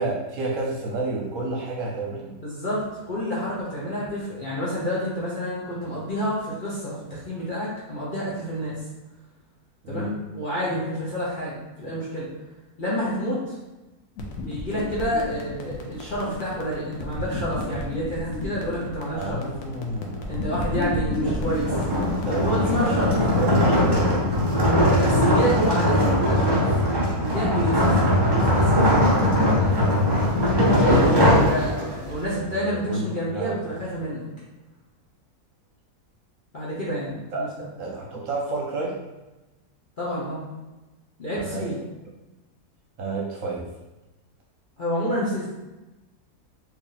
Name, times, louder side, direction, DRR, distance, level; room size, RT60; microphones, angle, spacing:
voice 1, 0.0-2.3 9.8-10.1 19.1-20.5 22.2-23.0 23.4-24.3 29.7-30.3 32.3-33.6 37.3-37.5 37.8-39.0 41.4-41.7 43.0-43.7, right 2 dB, 65° right, -3 dB, 0.9 m, -30 dB
voice 2, 2.4-8.7 9.9-12.3 12.8-13.6 14.4-19.4 20.3-23.1 24.8-26.6 27.2-29.0 30.7-34.3 36.5-37.5 40.0-40.4 41.2-41.8 44.8-45.5, equal, 40° left, -7 dB, 0.8 m, -29 dB
sound 1, 14.2-23.2, left 1 dB, 65° left, 0.9 m, -32 dB
sound 2, 21.2-32.1, left 1 dB, 25° right, 0.5 m, -20 dB
3.0 x 2.7 x 3.9 m, 1.1 s
omnidirectional pair, 1.7 m